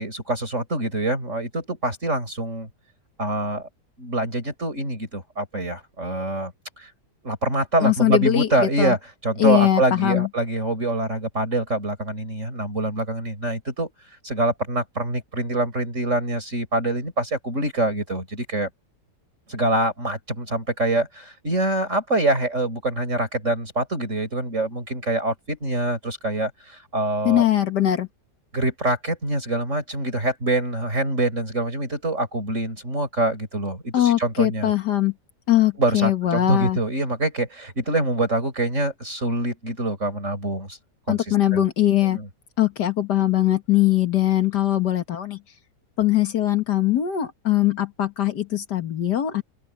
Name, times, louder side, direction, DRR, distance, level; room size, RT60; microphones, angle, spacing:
voice 1, 0.0-2.7 3.2-3.7 4.0-6.5 6.8-6.9 7.2-9.0 9.2-13.9 14.2-18.7 19.5-27.4 28.5-34.7 35.8-40.8 41.1-41.6 42.0-42.3, right 2 dB, 45° right, 6.2 m, -25 dB
voice 2, 7.8-9.0 9.4-10.3 27.2-28.1 33.9-35.1 35.5-36.8 41.1-42.2 42.6-45.4 46.0-49.4, left 12 dB, 75° left, 2.2 m, -21 dB
open air
omnidirectional pair, 1.8 m